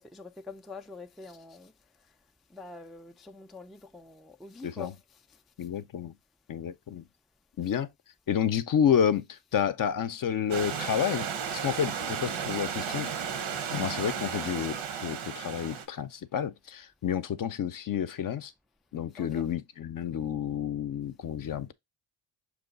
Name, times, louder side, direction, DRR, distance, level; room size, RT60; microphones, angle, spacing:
voice 1, 0.0-1.7 2.5-5.0 7.6-7.7 13.6-13.8 19.2-19.3, left 3 dB, ahead, 0.3 m, -45 dB
voice 2, 4.6-4.9 5.6-6.1 6.5-7.0 7.6-7.9 8.3-13.1 13.7-18.5 18.9-21.7, left 8 dB, 45° left, 0.5 m, -30 dB
Stream / Liquid, 10.5-15.8, right 7 dB, 85° right, 0.9 m, -34 dB
6.0 x 2.3 x 3.8 m
cardioid pair, 75°, 46 cm